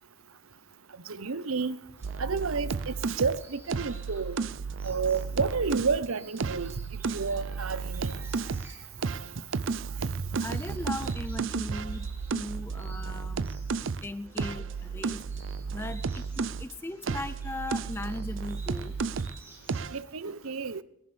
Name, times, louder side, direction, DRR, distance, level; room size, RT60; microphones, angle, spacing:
voice 1, 1.1-1.8 2.2-4.4 4.8-6.7 7.1-8.1 19.9-20.8, right 5 dB, 90° right, 0.9 m, -30 dB
sound 1, 2.0-20.0, right 2 dB, 10° right, 6.9 m, -55 dB
sound 2, 2.0-6.0 6.4-8.7 9.0-16.7 17.0-19.4 19.7-20.0, right 5 dB, 65° right, 0.5 m, -33 dB
voice 2, 10.4-13.5 14.0-15.2 15.7-16.2 16.6-19.0, left 2 dB, 10° left, 0.5 m, -38 dB
21.5 x 19.0 x 3.4 m
head